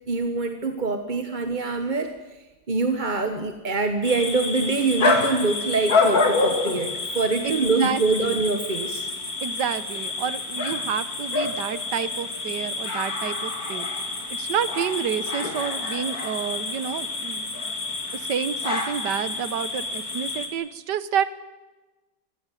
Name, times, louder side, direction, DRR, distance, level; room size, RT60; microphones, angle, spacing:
voice 1, 0.1-2.1 2.7-9.1, right 3 dB, 30° right, 7 dB, 1.2 m, -24 dB
sound 1, 4.0-20.5, left 3 dB, 60° left, 3.1 m, -28 dB
voice 2, 7.4-8.4 9.4-17.7 18.1-21.2, right 8 dB, 80° right, 14 dB, 1.7 m, -29 dB
24.5 x 16.0 x 9.1 m, 1.1 s
omnidirectional pair, 1.8 m